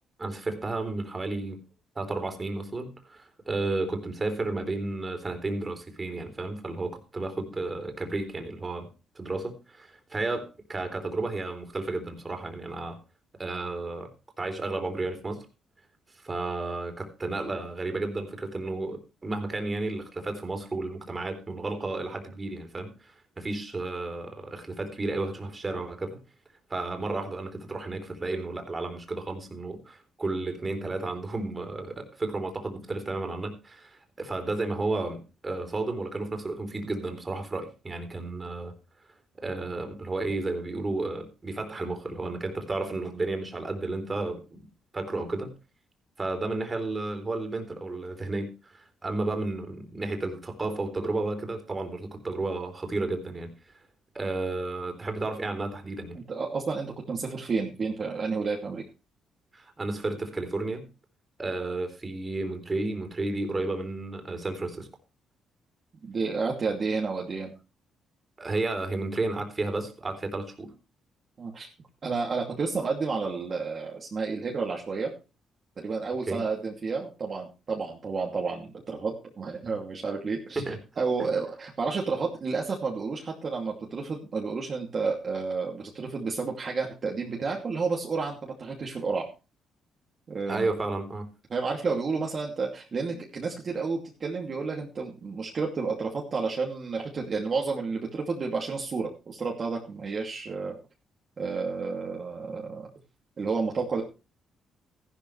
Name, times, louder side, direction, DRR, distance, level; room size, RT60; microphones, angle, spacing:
voice 1, 0.2-1.6 2.0-8.9 9.2-13.0 13.4-14.1 14.4-15.5 16.2-26.2 26.7-38.7 39.4-44.7 44.9-45.5 46.2-53.5 54.1-56.2 59.5-60.9 61.4-64.9 68.4-70.7 76.3-76.4 80.6-80.8 90.5-91.3, right 2 dB, 25° right, 6 dB, 3.7 m, -32 dB
voice 2, 56.3-58.8 66.0-67.5 71.4-71.7 72.0-75.1 75.8-80.6 81.0-89.3 90.3-90.7 91.5-100.8 101.4-102.9 103.4-104.0, right 4 dB, 45° right, -1 dB, 2.6 m, -31 dB
14.5 x 12.0 x 3.3 m, 0.31 s
cardioid pair, 90°, 0 cm